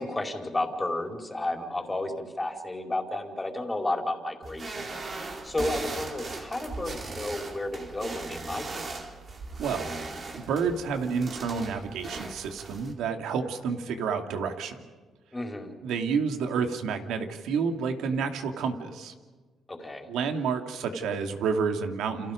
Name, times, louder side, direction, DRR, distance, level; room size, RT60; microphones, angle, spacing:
voice 1, 0.0-8.8 15.3-15.7 19.7-20.1, left 2 dB, 15° left, 3 dB, 4.7 m, -32 dB
sound 1, 4.4-12.9, right 3 dB, 45° right, 4.3 m, -38 dB
voice 2, 9.6-14.8 15.8-19.1 20.1-22.3, right 5 dB, 85° right, 5 dB, 2.6 m, -30 dB
30.0 x 28.5 x 5.3 m, 1.4 s
cardioid pair, 90°, 0 cm